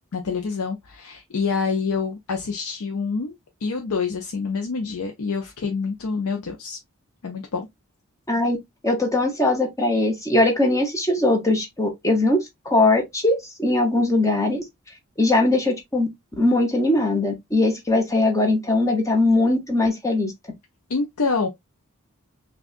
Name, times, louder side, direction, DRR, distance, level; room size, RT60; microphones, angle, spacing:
voice 1, 0.0-3.3 3.6-6.8 7.2-7.7 20.9-21.5, left 4 dB, 80° left, 0.6 m, -26 dB
voice 2, 8.8-14.6 15.2-16.1 16.4-20.3, left 2 dB, 15° left, 0.9 m, -20 dB
5.9 x 2.4 x 2.4 m
head